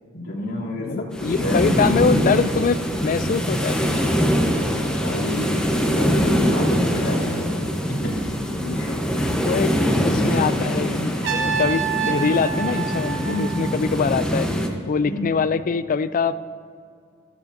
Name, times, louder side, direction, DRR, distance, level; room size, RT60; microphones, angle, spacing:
voice 1, 0.1-1.0 1.4-1.7 5.0-7.6 8.0-8.1 8.7-8.9 9.8-10.4 13.2-13.7 15.0-15.4, left 1 dB, 85° left, -6 dB, 3.1 m, -29 dB
voice 2, 0.8-4.0 8.6-14.5 14.9-16.3, left 5 dB, 40° left, 14 dB, 0.3 m, -24 dB
sound 1, 1.1-14.7, equal, 5° left, 0.9 m, -23 dB
Trumpet, 11.2-14.2, right 8 dB, 60° right, 1.0 m, -28 dB
14.0 x 13.5 x 2.7 m, 2.4 s
head